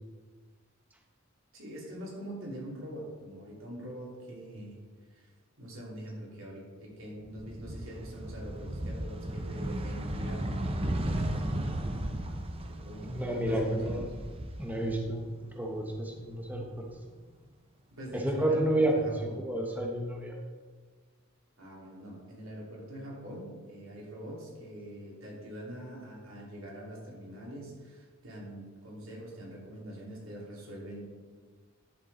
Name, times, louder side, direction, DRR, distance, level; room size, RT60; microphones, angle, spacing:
voice 1, 1.5-4.8 5.1-5.3 5.6-11.6 12.7-14.0 17.9-19.4 21.6-31.0, equal, 85° right, -3 dB, 3.0 m, -43 dB
sound 1, 7.2-15.4 15.7-16.9, right 1 dB, 30° right, 0.7 m, -35 dB
voice 2, 13.1-14.0 14.6-16.8 18.1-20.3, right 1 dB, 10° right, 0 dB, 1.0 m, -30 dB
11.0 x 7.5 x 4.2 m, 1.5 s
head